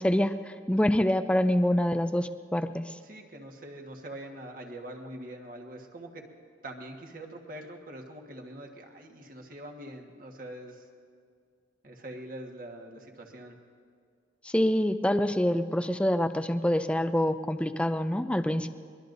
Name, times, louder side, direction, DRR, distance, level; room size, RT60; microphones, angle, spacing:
voice 1, 0.0-2.9 14.4-18.7, left 1 dB, 5° left, 10 dB, 0.4 m, -26 dB
voice 2, 3.0-6.2 6.6-10.8 11.8-13.6, right 1 dB, 50° right, 2 dB, 1.5 m, -43 dB
22.5 x 21.5 x 2.7 m, 2.2 s
head